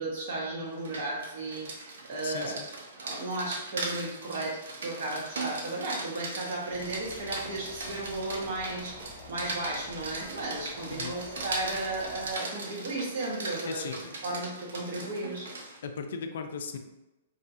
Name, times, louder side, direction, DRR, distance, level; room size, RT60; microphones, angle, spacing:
voice 1, 0.0-2.6 3.0-13.9 14.2-15.5, right 2 dB, 55° right, -3 dB, 0.9 m, -34 dB
Rain, 0.7-15.8, right 3 dB, 80° right, 0.6 m, -39 dB
voice 2, 2.2-2.7 10.9-11.1 13.6-14.0 15.8-16.8, left 5 dB, 65° left, 7 dB, 0.3 m, -37 dB
sound 1, 6.7-12.4, left 2 dB, 5° left, 1.0 m, -48 dB
2.7 x 2.3 x 2.6 m, 0.98 s
hypercardioid pair, 165°, 0 cm